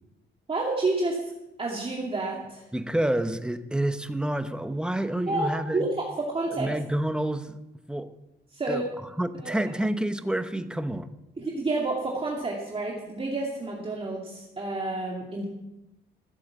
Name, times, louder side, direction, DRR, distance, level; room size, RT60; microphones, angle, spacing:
voice 1, 0.5-1.3 1.6-2.6 5.3-6.7 8.5-8.8 9.4-9.5 11.4-15.5, right 2 dB, 30° right, -2 dB, 2.3 m, -29 dB
voice 2, 2.7-5.9 6.6-7.6 7.9-8.2 8.7-8.8 9.2-11.1, right 1 dB, 5° right, 10 dB, 1.0 m, -28 dB
15.0 x 7.7 x 7.4 m, 0.97 s
cardioid pair, 90°, 20 cm